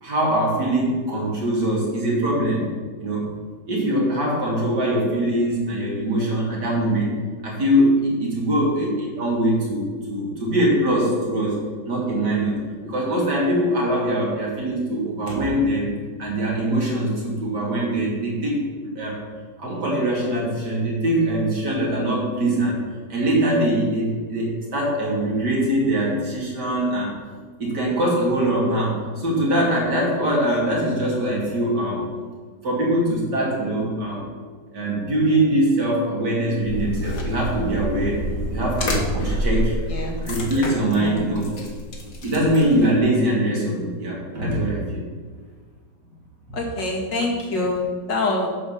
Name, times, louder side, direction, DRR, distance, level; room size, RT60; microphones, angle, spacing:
voice 1, 0.0-2.7 3.0-3.3 3.7-7.1 7.4-11.6 11.8-12.6 12.8-15.9 16.2-18.6 18.9-19.2 19.6-22.8 23.1-27.1 27.6-32.0 32.6-34.2 34.7-38.2 38.5-39.7 40.2-41.6 42.2-45.1 46.5-46.6, right 1 dB, 65° right, -4 dB, 3.2 m, -22 dB
sound 1, 36.6-43.0, equal, 50° left, 1.8 m, -28 dB
voice 2, 39.9-40.2 40.9-41.3 46.5-48.5, left 2 dB, 75° left, -2 dB, 2.6 m, -26 dB
9.3 x 5.4 x 6.9 m, 1.5 s
omnidirectional pair, 1.9 m